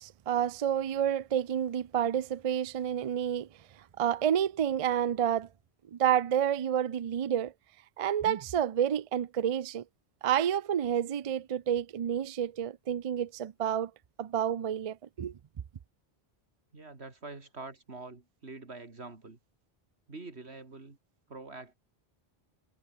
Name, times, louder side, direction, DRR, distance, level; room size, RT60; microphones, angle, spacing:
voice 1, 0.0-3.5 4.0-5.5 5.9-7.5 8.0-9.8 10.2-13.9 14.2-15.4, right 9 dB, 45° right, 0.5 m, -29 dB
voice 2, 16.7-19.4 20.1-21.0 21.3-21.8, right 3 dB, 90° right, 3.2 m, -45 dB
omnidirectional pair, 1.1 m